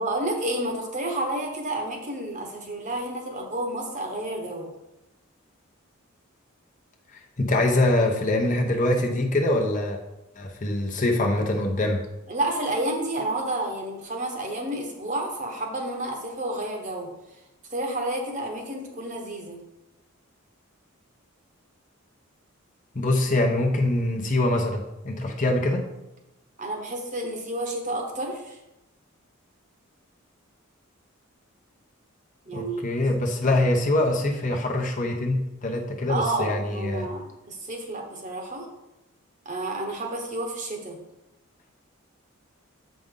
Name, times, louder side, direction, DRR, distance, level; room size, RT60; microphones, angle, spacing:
voice 1, 0.0-4.7 12.3-17.1 17.7-19.6 26.6-28.6 32.5-32.9 36.1-38.7 39.4-41.0, right 1 dB, 35° right, 2 dB, 1.1 m, -30 dB
voice 2, 7.4-10.0 10.4-12.0 22.9-25.8 32.5-37.1, left 1 dB, 35° left, 1 dB, 0.8 m, -24 dB
7.6 x 5.2 x 3.8 m, 0.94 s
head